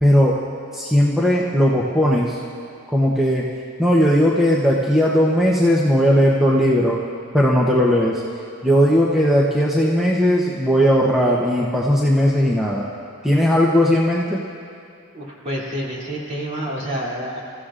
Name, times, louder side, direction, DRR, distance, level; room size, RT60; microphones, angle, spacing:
voice 1, 0.0-0.4 0.7-2.4 2.9-3.5 3.8-7.0 7.3-8.2 8.6-12.9 13.2-14.4, equal, ahead, -5 dB, 0.8 m, -17 dB
voice 2, 15.1-17.4, equal, 30° right, -5 dB, 2.8 m, -28 dB
26.5 x 15.0 x 2.5 m, 2.4 s
head